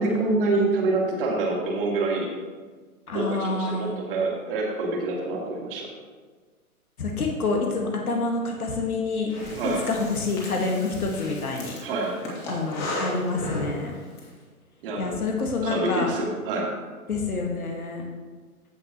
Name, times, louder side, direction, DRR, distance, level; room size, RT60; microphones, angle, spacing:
voice 1, 0.0-2.3 3.1-5.9 9.6-9.8 11.8-12.1 14.8-15.2 15.6-16.7, right 2 dB, 40° right, -1 dB, 2.2 m, -26 dB
voice 2, 3.1-4.0 7.0-9.5 9.9-11.8 12.5-13.9 15.0-16.1 17.1-18.0, left 3 dB, 75° left, 1 dB, 1.7 m, -27 dB
Breathing, 9.3-14.2, left 1 dB, 25° left, 2.4 m, -35 dB
15.5 x 5.9 x 3.0 m, 1.4 s
figure-of-eight pair, 135°, 44 cm